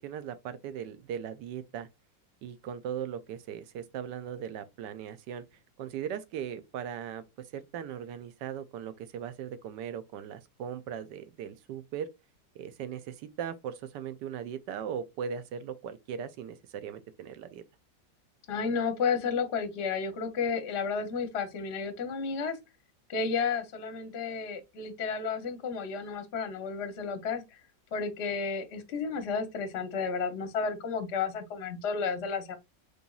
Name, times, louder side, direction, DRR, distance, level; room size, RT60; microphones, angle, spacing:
voice 1, 0.0-1.9 2.4-5.4 5.8-12.1 12.5-17.6, right 8 dB, 80° right, 1.2 m, -38 dB
voice 2, 18.5-22.6 23.1-27.6 27.9-32.6, left 5 dB, 55° left, 0.8 m, -32 dB
5.0 x 3.2 x 2.3 m
omnidirectional pair, 2.0 m